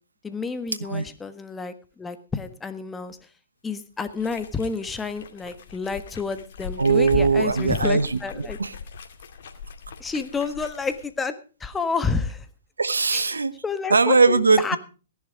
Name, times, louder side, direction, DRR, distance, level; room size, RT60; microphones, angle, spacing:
voice 1, 0.2-3.2 3.6-8.6 10.0-11.3 11.6-12.5 13.1-13.2 13.6-14.8, left 4 dB, 10° left, 1.4 m, -30 dB
sound 1, 4.1-11.1, left 5 dB, 60° left, 2.2 m, -38 dB
voice 2, 6.8-8.7 12.8-13.6 13.9-14.8, right 4 dB, 85° right, 1.1 m, -20 dB
16.0 x 11.0 x 5.0 m
hypercardioid pair, 120°, 0 cm